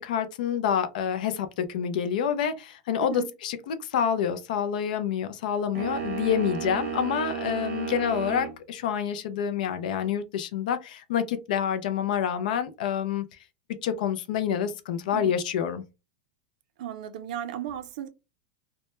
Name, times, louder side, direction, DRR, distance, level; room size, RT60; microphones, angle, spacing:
voice 1, 0.0-13.2 13.8-15.8, left 8 dB, 70° left, 0.4 m, -27 dB
voice 2, 3.0-3.3 15.1-15.4 16.8-18.1, right 11 dB, 60° right, 0.4 m, -35 dB
sound 1, 5.7-8.6, right 6 dB, 30° right, 0.7 m, -33 dB
2.1 x 2.1 x 2.9 m
supercardioid pair, 165°, 5 cm